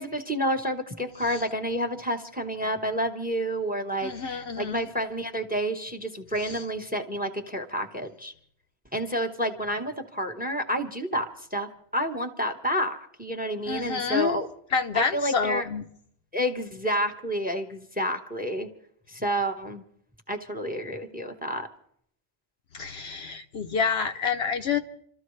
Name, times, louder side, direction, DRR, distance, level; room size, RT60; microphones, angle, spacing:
voice 1, 0.0-8.3 8.9-14.5 14.9-15.7 16.3-18.7 19.1-19.8 20.3-21.7, equal, 10° right, 6 dB, 1.1 m, -29 dB
voice 2, 4.0-4.8 6.4-6.6 13.7-14.4 14.7-15.8 22.7-24.8, left 5 dB, 60° left, 6 dB, 1.0 m, -28 dB
27.5 x 13.5 x 3.2 m, 0.66 s
omnidirectional pair, 1.2 m